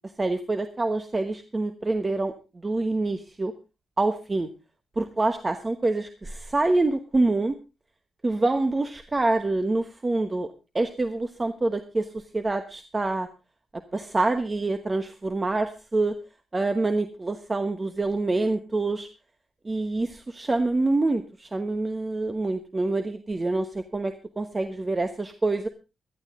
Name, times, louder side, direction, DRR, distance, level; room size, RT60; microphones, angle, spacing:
voice 1, 0.2-2.3 2.6-3.5 4.0-4.5 5.0-7.5 8.2-10.5 10.7-12.1 12.3-13.3 13.9-16.2 16.5-19.1 19.6-25.7, right 2 dB, 25° right, 8 dB, 1.2 m, -26 dB
18.0 x 12.0 x 3.6 m, 0.29 s
cardioid pair, 80°, 0 cm